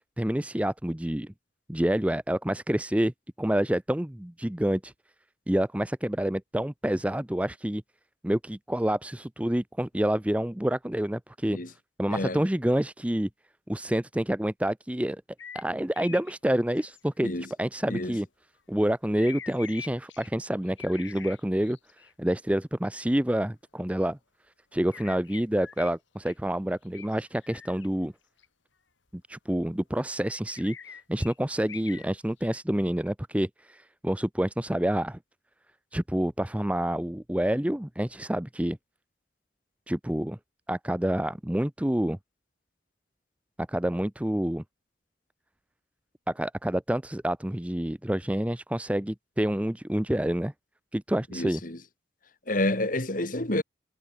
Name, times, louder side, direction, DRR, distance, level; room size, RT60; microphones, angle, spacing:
voice 1, 0.2-1.3 1.7-3.1 3.4-4.9 5.5-7.8 8.2-11.6 12.0-13.3 13.7-15.2 15.5-17.3 17.6-18.3 18.7-21.8 22.2-24.2 24.7-28.1 29.3-30.8 31.1-35.2 35.9-38.8 39.9-40.4 40.7-42.2 43.6-44.6 46.3-50.5 50.9-51.6, right 1 dB, 5° right, 0.6 m, -28 dB
voice 2, 12.1-12.4 17.2-17.4 17.9-18.2 51.3-51.8 52.5-53.6, left 1 dB, 45° left, 2.6 m, -29 dB
sound 1, 15.4-15.6 15.9-16.3 16.7-17.0 19.2-22.1 24.9-25.9 26.2-26.3 26.8-27.9 28.4-28.5 30.5-32.1 32.4-32.6, left 7 dB, 85° left, 5.1 m, -45 dB
head